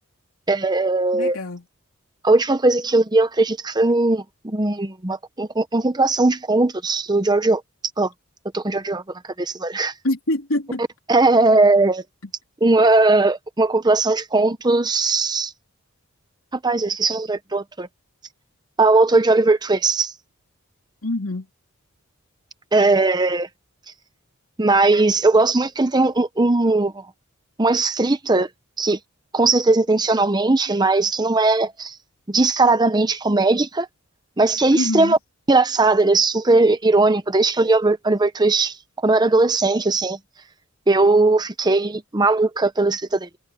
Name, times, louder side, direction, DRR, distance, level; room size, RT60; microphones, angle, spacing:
voice 1, 0.5-1.4 2.2-7.6 8.0-8.1 8.5-9.0 9.4-9.9 11.1-12.0 12.6-15.5 16.5-17.9 18.8-20.1 22.7-23.5 24.6-27.0 27.6-28.5 28.8-29.0 29.3-31.9 32.3-33.9 34.4-35.2 35.5-38.8 39.0-40.2 40.9-43.3, right 2 dB, 20° right, 0.8 m, -18 dB
voice 2, 1.1-1.6 10.0-10.8 12.2-12.3 21.0-21.5 34.7-35.2, left 1 dB, 75° left, 3.1 m, -25 dB
head